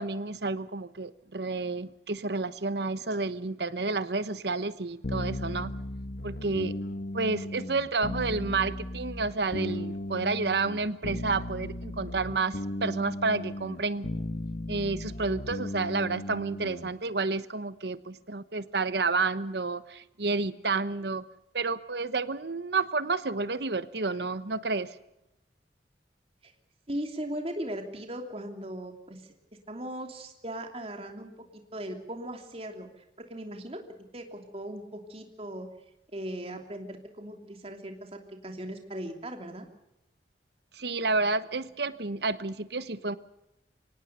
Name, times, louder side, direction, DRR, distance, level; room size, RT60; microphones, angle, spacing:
voice 1, 0.0-5.7 6.2-6.8 7.1-14.1 14.7-21.2 21.5-25.0 40.7-43.2, right 3 dB, 70° right, 14 dB, 1.1 m, -30 dB
sound 1, 5.0-16.9, left 1 dB, 60° left, 1.2 m, -36 dB
voice 2, 26.9-33.8 34.1-35.7 36.1-39.7, right 1 dB, 35° right, 4 dB, 3.0 m, -38 dB
24.5 x 18.5 x 6.9 m, 0.87 s
head